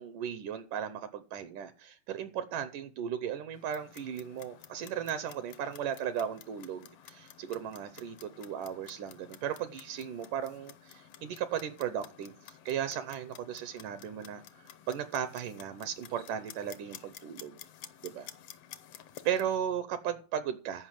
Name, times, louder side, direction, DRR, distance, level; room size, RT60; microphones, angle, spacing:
voice 1, 0.0-17.6 18.0-18.3 19.3-20.9, right 9 dB, 75° right, 11 dB, 2.1 m, -36 dB
Clock, 3.5-19.6, left 10 dB, 85° left, 1.4 m, -53 dB
14.0 x 5.6 x 7.6 m, 0.39 s
omnidirectional pair, 4.2 m